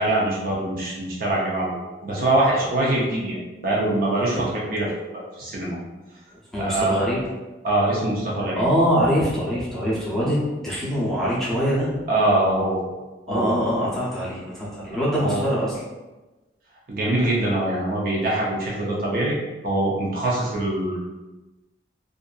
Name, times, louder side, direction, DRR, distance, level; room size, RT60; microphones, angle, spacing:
voice 1, 0.0-4.9 5.1-5.8 6.6-7.1 7.6-8.6 12.1-12.8 13.3-13.5 15.1-15.5 16.9-19.4 19.6-21.0, right 1 dB, 50° right, -4 dB, 0.6 m, -23 dB
voice 2, 6.5-7.2 8.6-10.4 10.6-11.9 13.3-15.7, equal, ahead, -9 dB, 0.6 m, -23 dB
2.6 x 2.4 x 2.3 m, 1.1 s
head